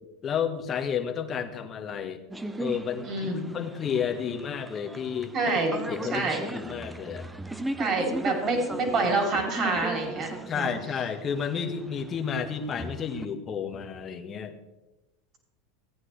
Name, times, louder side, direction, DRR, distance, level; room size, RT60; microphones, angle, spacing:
voice 1, 0.2-2.2 2.6-7.3 10.5-14.5, left 7 dB, 35° left, 5 dB, 1.3 m, -31 dB
sound 1, 2.3-13.3, right 1 dB, 10° right, 0.7 m, -38 dB
voice 2, 3.0-3.5 5.3-5.8 6.1-6.4 7.8-10.7, right 3 dB, 40° right, 2 dB, 3.2 m, -27 dB
15.5 x 9.5 x 3.3 m, 1.0 s
hypercardioid pair, 95°, 0 cm